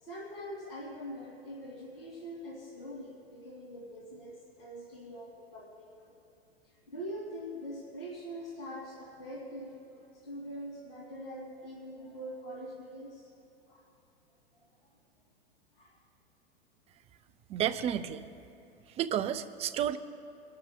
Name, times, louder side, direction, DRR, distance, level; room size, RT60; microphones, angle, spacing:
voice 1, 0.0-5.9 6.9-13.3 13.7-13.8 15.7-15.9, equal, 70° left, -4 dB, 2.8 m, -43 dB
voice 2, 17.5-18.3 19.0-20.0, right 10 dB, 20° right, 12 dB, 0.4 m, -31 dB
26.0 x 12.0 x 2.3 m, 2.8 s
figure-of-eight pair, 95°, 30 cm